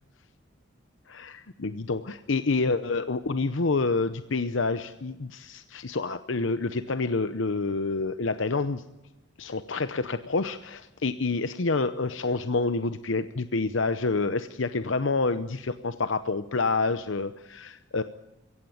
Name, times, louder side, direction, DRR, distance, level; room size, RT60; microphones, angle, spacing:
voice 1, 1.1-8.8 9.4-18.0, left 3 dB, 70° left, 11 dB, 0.8 m, -28 dB
22.5 x 17.0 x 9.4 m, 1.0 s
head